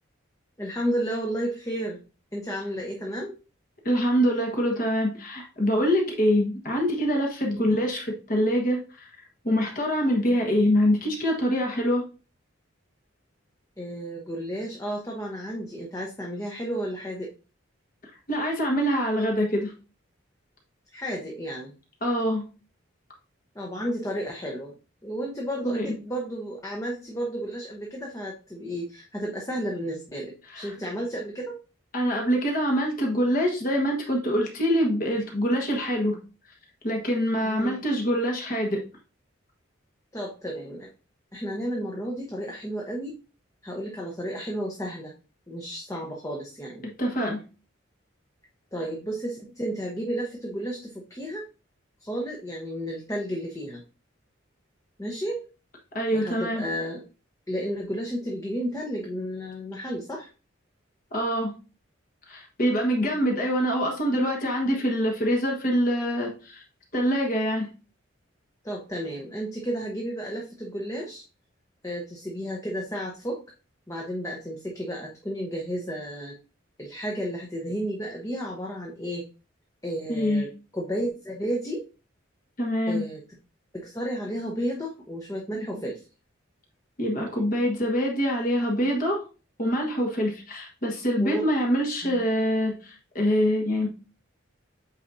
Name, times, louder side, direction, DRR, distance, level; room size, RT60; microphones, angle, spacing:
voice 1, 0.6-2.0 2.3-3.3 7.4-7.7 13.8-17.3 20.9-21.7 23.5-24.7 25.0-31.6 37.4-37.8 40.1-40.9 41.3-43.2 43.6-45.1 45.5-46.8 48.7-51.5 52.0-53.8 55.0-55.5 56.1-57.0 57.5-60.3 68.6-71.2 71.8-73.4 73.9-76.4 76.8-79.2 79.8-81.8 82.9-83.2 83.7-86.1 91.2-91.5 92.0-92.2, equal, 15° left, -1 dB, 0.9 m, -32 dB
voice 2, 3.8-9.1 9.4-12.0 18.3-19.7 22.0-22.4 25.6-25.9 30.5-30.7 31.9-36.2 36.8-38.8 46.8-47.4 55.9-56.6 61.1-61.5 62.3-66.6 66.9-67.7 80.1-80.4 82.6-83.0 87.0-89.2 89.6-93.9, equal, 40° left, 0 dB, 1.3 m, -25 dB
8.4 x 4.2 x 2.6 m, 0.33 s
head